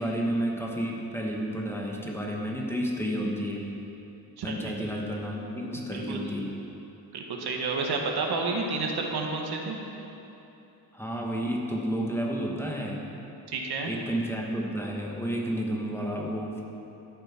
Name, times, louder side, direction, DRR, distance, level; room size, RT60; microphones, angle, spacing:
voice 1, 0.0-3.7 4.4-6.5 10.9-13.0 13.9-16.6, equal, 5° left, -1 dB, 1.1 m, -31 dB
voice 2, 4.4-4.9 5.8-6.2 7.1-9.8 13.5-13.9, right 3 dB, 75° right, 1 dB, 1.6 m, -31 dB
13.0 x 9.0 x 5.9 m, 3.0 s
wide cardioid pair, 165°, 39 cm